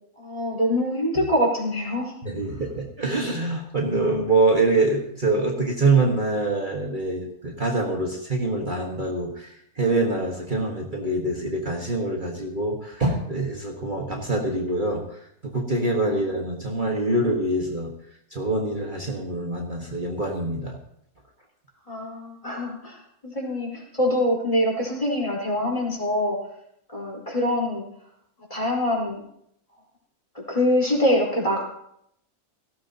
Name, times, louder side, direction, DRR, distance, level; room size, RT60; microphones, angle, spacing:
voice 1, 0.2-2.1 16.1-16.2 21.9-23.0 23.2-26.4 26.9-27.8 28.5-29.2 30.5-31.6, left 1 dB, 25° left, -3 dB, 4.6 m, -24 dB
voice 2, 2.2-17.9 18.3-20.8, right 2 dB, 35° right, -1 dB, 1.7 m, -25 dB
18.0 x 16.5 x 2.9 m, 0.73 s
omnidirectional pair, 1.5 m